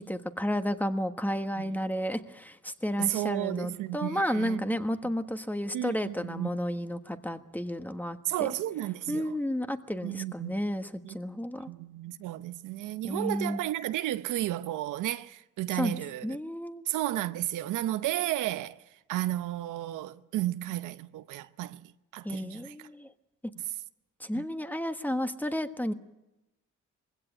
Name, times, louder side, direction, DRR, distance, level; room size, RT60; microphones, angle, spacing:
voice 1, 0.0-8.5 9.1-11.7 13.0-13.6 15.7-16.8 22.2-23.1 24.2-25.9, equal, 5° left, 1.4 m, -32 dB
voice 2, 3.0-4.8 5.0-5.1 5.7-6.5 8.2-9.4 10.0-10.5 11.0-11.2 11.7-16.4 16.9-18.8 19.1-22.7 24.3-24.4, right 14 dB, 85° right, 0.8 m, -33 dB
21.0 x 16.5 x 9.1 m
cardioid pair, 90°, 30 cm